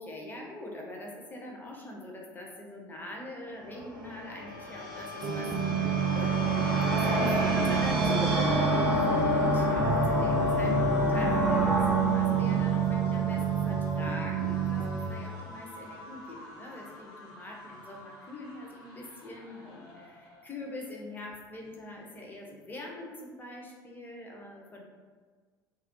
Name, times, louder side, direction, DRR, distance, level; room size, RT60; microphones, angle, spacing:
voice 1, 0.0-24.8, left 1 dB, 15° left, -1 dB, 0.5 m, -43 dB
sound 1, 3.7-14.0, left 1 dB, 80° right, 0.6 m, -29 dB
sound 2, 5.2-15.1, right 8 dB, 35° right, 0.3 m, -29 dB
sound 3, 5.7-20.8 21.1-21.4 21.6-22.4, left 1 dB, 55° left, 0.7 m, -45 dB
2.3 x 2.0 x 2.8 m, 1.5 s
figure-of-eight pair, 65°, 12 cm